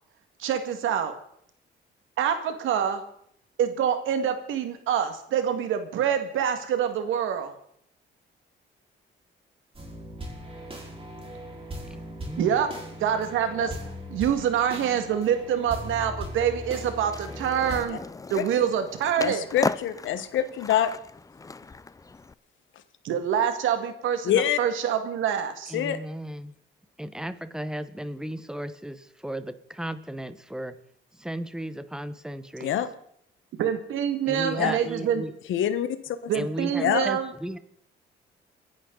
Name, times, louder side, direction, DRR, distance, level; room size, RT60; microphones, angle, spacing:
voice 1, 0.4-1.1 2.2-3.0 3.6-7.5 12.4-12.7 13.0-13.8 14.1-18.0 18.3-19.5 23.0-25.8 33.6-35.2 36.3-37.3, right 8 dB, 85° right, 8 dB, 1.9 m, -26 dB
sound 1, 9.7-17.8, right 1 dB, 30° right, 4.5 m, -39 dB
voice 2, 11.9-12.6 25.7-26.5 27.0-30.7 31.2-32.7 34.3-35.3 36.3-37.6, right 1 dB, 5° right, 12 dB, 1.1 m, -35 dB
Skateboard, 17.1-22.3, left 3 dB, 15° left, 0.5 m, -36 dB
voice 3, 19.2-20.9 24.2-24.6 25.7-26.0 32.6-32.9 34.6-34.7 35.5-36.2 36.8-37.1, left 10 dB, 80° left, 12 dB, 1.2 m, -25 dB
29.0 x 11.0 x 4.0 m, 0.69 s
cardioid pair, 90°, 20 cm